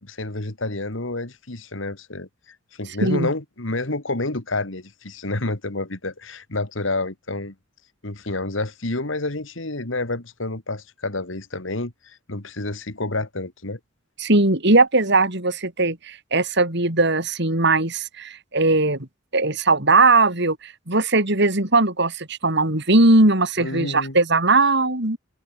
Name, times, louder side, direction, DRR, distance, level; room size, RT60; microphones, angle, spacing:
voice 1, 0.0-2.3 2.8-7.5 8.0-13.8 23.6-24.2, left 2 dB, 70° left, 2.5 m, -29 dB
voice 2, 14.2-19.0 19.3-25.2, right 2 dB, 60° right, 5.0 m, -19 dB
head